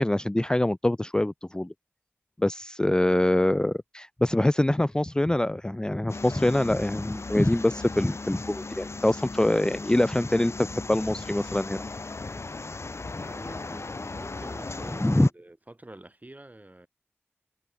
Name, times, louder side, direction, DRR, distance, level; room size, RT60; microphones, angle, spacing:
voice 1, 0.0-1.7 2.4-11.8 15.0-15.3, left 1 dB, 15° left, 0.4 m, -24 dB
sound 1, 6.1-15.3, left 3 dB, 85° left, 4.4 m, -37 dB
voice 2, 13.1-16.9, right 1 dB, 35° right, 6.7 m, -47 dB
wide cardioid pair, 55°, 5 cm